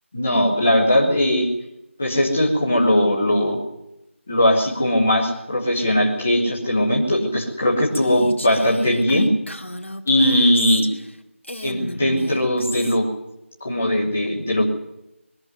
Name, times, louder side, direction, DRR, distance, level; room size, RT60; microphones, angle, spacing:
voice 1, 0.1-1.5 2.0-3.6 4.3-9.3 10.1-10.9 11.6-13.1 13.6-14.6, left 1 dB, 5° left, -5 dB, 1.1 m, -19 dB
Female speech woman speaking, 7.9-11.1 11.4-13.0, left 1 dB, 65° left, 2.5 m, -34 dB
21.5 x 13.5 x 9.5 m, 0.87 s
figure-of-eight pair, 180°, 7 cm